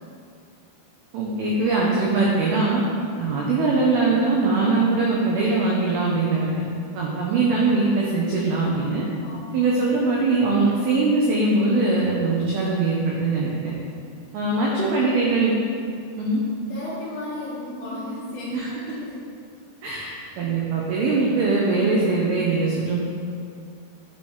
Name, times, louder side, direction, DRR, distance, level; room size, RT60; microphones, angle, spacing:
voice 1, 1.1-2.8 3.2-6.5 7.0-9.1 9.5-13.7 14.3-15.5 16.2-16.4 18.5-18.7 19.8-23.0, right 3 dB, 85° right, -3 dB, 2.2 m, -21 dB
voice 2, 9.2-9.7 14.6-15.4 16.7-19.2, left 1 dB, 65° left, -9 dB, 2.7 m, -35 dB
9.0 x 4.7 x 4.4 m, 2.4 s
omnidirectional pair, 5.5 m